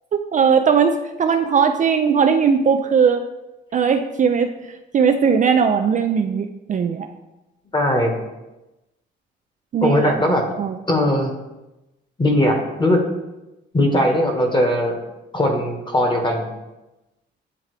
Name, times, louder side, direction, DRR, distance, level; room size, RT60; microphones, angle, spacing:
voice 1, 0.1-3.2 3.7-4.5 4.9-7.1 9.7-10.1 10.6-10.8, right 6 dB, 40° right, 7 dB, 0.4 m, -18 dB
voice 2, 7.7-8.2 9.8-10.5 10.9-11.3 12.2-13.0 13.7-14.9 15.3-16.5, left 1 dB, 25° left, 3 dB, 1.3 m, -19 dB
8.8 x 3.5 x 3.3 m, 1.0 s
cardioid pair, 90°, 20 cm